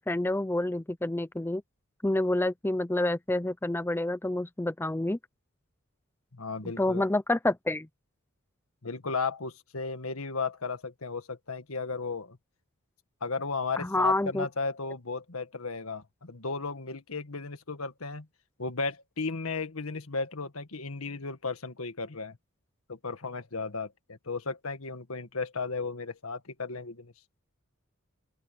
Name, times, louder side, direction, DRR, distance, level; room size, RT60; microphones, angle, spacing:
voice 1, 0.0-1.6 2.0-5.2 6.8-7.9 13.8-14.5, left 1 dB, 10° left, 0.5 m, -28 dB
voice 2, 6.3-7.1 8.8-12.4 13.2-18.3 18.6-22.4 22.9-27.1, left 4 dB, 90° left, 1.7 m, -35 dB
open air
head